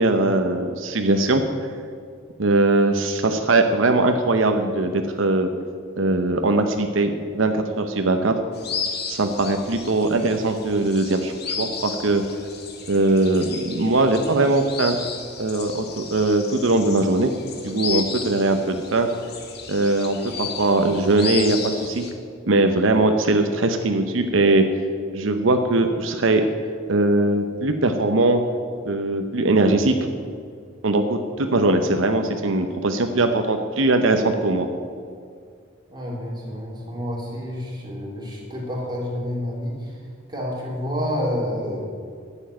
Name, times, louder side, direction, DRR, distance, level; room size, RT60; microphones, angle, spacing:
voice 1, 0.0-1.4 2.4-5.5 6.0-8.3 9.1-12.2 12.9-15.0 15.4-17.3 17.6-19.1 19.7-22.0 22.5-24.6 25.1-26.4 26.9-28.4 28.9-30.1 30.8-34.7, right 2 dB, 80° right, 6 dB, 0.8 m, -20 dB
sound 1, 8.5-22.1, left 5 dB, 55° left, 1.6 m, -34 dB
voice 2, 35.9-40.0 40.3-41.8, equal, 20° right, -4 dB, 3.1 m, -29 dB
11.5 x 7.2 x 9.2 m, 2.2 s
head